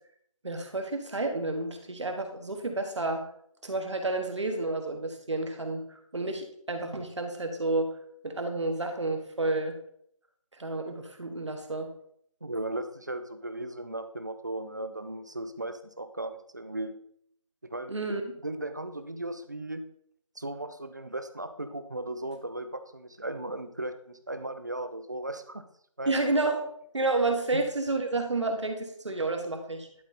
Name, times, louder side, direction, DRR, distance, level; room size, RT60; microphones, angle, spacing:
voice 1, 0.4-3.2 3.6-7.9 8.2-9.8 10.6-11.9 17.9-18.3 26.1-26.6 26.9-29.9, right 2 dB, 60° right, 5 dB, 1.5 m, -30 dB
voice 2, 12.4-17.0 17.7-17.9 18.4-19.8 20.4-25.6 26.0-26.1 27.5-27.6, right 1 dB, 35° right, 9 dB, 0.5 m, -36 dB
11.5 x 3.9 x 4.1 m, 0.68 s
figure-of-eight pair, 180°, 17 cm